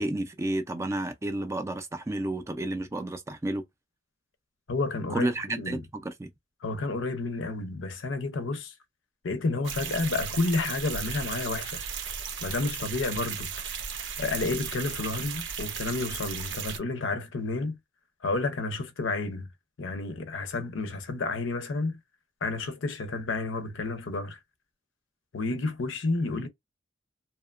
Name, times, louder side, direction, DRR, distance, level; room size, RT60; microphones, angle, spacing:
voice 1, 0.0-3.6 5.1-6.3, right 1 dB, 15° right, 0.3 m, -31 dB
voice 2, 4.7-5.8 6.6-8.7 9.2-11.8 12.4-13.6 14.2-17.7 18.2-19.5 19.8-22.0 22.4-24.4 25.3-26.5, left 3 dB, 80° left, 0.6 m, -30 dB
sound 1, 9.6-16.8, right 7 dB, 70° right, 0.6 m, -35 dB
2.8 x 2.1 x 2.3 m
head